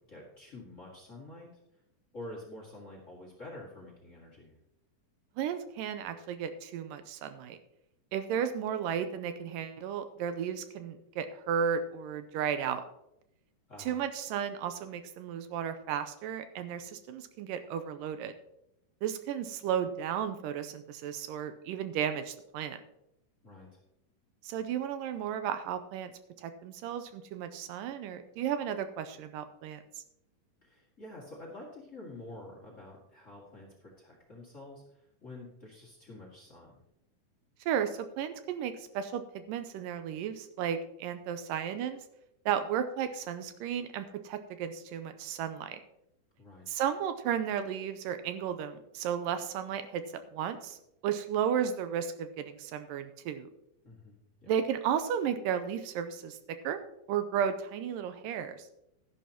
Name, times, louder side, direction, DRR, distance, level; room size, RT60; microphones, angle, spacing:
voice 1, 0.1-1.5 2.1-4.5 13.7-14.0 23.4-23.8 30.6-36.8 46.4-46.8 53.8-54.1 54.4-54.5, left 1 dB, 30° left, -2 dB, 1.7 m, -48 dB
voice 2, 5.4-7.6 8.1-12.8 13.9-18.3 19.0-22.8 24.4-26.1 26.4-29.8 37.6-42.0 42.5-45.8 46.7-50.8 51.0-53.5 54.5-56.8 57.1-58.7, right 8 dB, 85° right, 10 dB, 2.3 m, -34 dB
12.5 x 11.0 x 2.9 m, 0.81 s
omnidirectional pair, 3.9 m